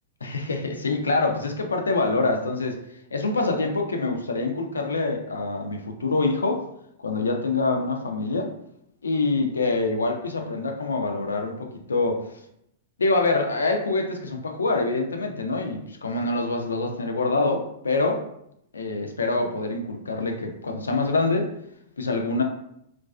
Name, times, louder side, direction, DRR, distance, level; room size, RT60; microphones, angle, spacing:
voice 1, 0.2-2.8 3.1-6.6 7.0-8.5 9.0-12.2 13.0-18.2 18.7-21.5 22.0-22.4, left 3 dB, 80° left, 3 dB, 0.4 m, -25 dB
2.4 x 2.2 x 2.3 m, 0.76 s
figure-of-eight pair, 105°, 0 cm